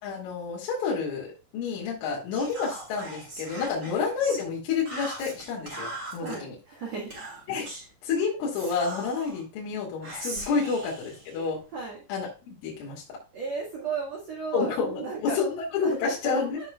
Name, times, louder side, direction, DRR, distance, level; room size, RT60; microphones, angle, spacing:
voice 1, 0.0-1.3 1.5-6.6 7.5-7.7 8.0-11.6 12.1-13.2 14.5-16.7, left 5 dB, 80° left, -4 dB, 4.9 m, -29 dB
Whispering, 2.3-4.4 4.9-6.4 7.1-7.9 8.5-9.4 10.0-11.9, right 2 dB, 25° right, 3.0 m, -40 dB
voice 2, 6.2-7.1 10.6-10.7 11.7-12.0 13.3-15.4 15.8-16.7, right 4 dB, 60° right, -1 dB, 1.8 m, -35 dB
15.0 x 5.5 x 2.3 m, 0.31 s
omnidirectional pair, 5.7 m